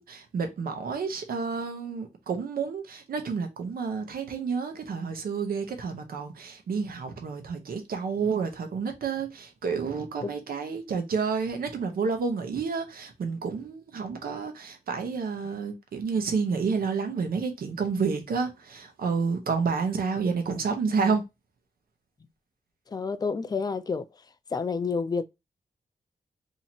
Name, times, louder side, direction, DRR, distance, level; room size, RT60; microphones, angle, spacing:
voice 1, 0.0-21.2, right 5 dB, 85° right, 0.8 m, -30 dB
voice 2, 22.9-24.0 24.5-25.2, left 5 dB, 25° left, 0.4 m, -29 dB
2.8 x 2.8 x 4.3 m
wide cardioid pair, 90°, 15 cm